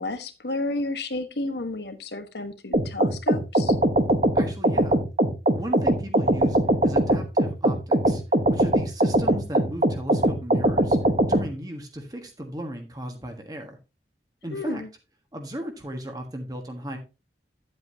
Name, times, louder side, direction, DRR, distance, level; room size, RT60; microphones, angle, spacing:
voice 1, 0.0-3.8 14.5-14.9, left 2 dB, 75° left, 9 dB, 1.3 m, -32 dB
sound 1, 2.7-11.5, right 1 dB, 40° right, 1.0 m, -21 dB
voice 2, 4.3-5.0 5.5-8.2 8.5-11.0 11.2-13.8 14.4-14.8 15.3-17.0, right 1 dB, 20° right, 4 dB, 1.4 m, -36 dB
10.5 x 7.9 x 2.8 m, 0.29 s
head